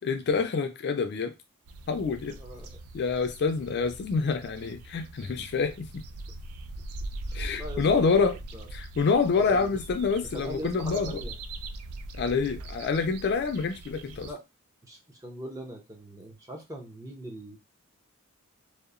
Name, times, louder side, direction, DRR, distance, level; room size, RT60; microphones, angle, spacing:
voice 1, 0.0-1.3 1.9-2.4 2.9-5.9 7.3-8.4 8.7-11.2 12.1-14.3, left 5 dB, 50° left, 0.4 m, -27 dB
sound 1, 1.6-14.3, right 2 dB, 80° right, 0.3 m, -41 dB
voice 2, 2.4-2.7 7.3-8.7 9.3-9.8 10.3-11.4 14.2-14.4 14.9-17.6, right 1 dB, 15° right, 0.6 m, -41 dB
2.8 x 2.0 x 2.4 m
head